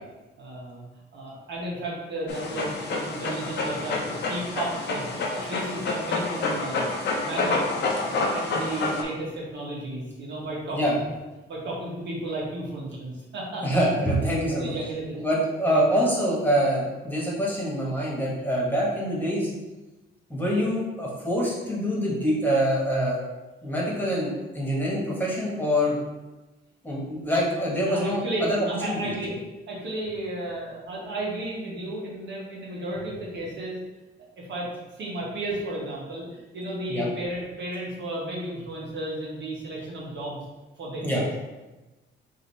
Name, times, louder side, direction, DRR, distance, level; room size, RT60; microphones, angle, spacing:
voice 1, 0.4-0.8 1.1-7.7 7.9-11.0 11.5-13.6 14.2-15.1 15.7-15.8 20.3-20.5 27.9-29.3 29.7-33.8 34.5-34.7 35.0-40.4 40.8-41.2, right 1 dB, 65° right, -5 dB, 1.4 m, -33 dB
Dog, 2.3-9.0, left 3 dB, 60° left, 0.8 m, -28 dB
voice 2, 13.6-14.7 15.1-19.5 20.3-23.2 23.6-25.9 26.8-29.1 36.9-37.1 41.0-41.2, equal, 10° left, -5 dB, 1.5 m, -25 dB
3.9 x 2.8 x 4.1 m, 1.1 s
cardioid pair, 90°, 20 cm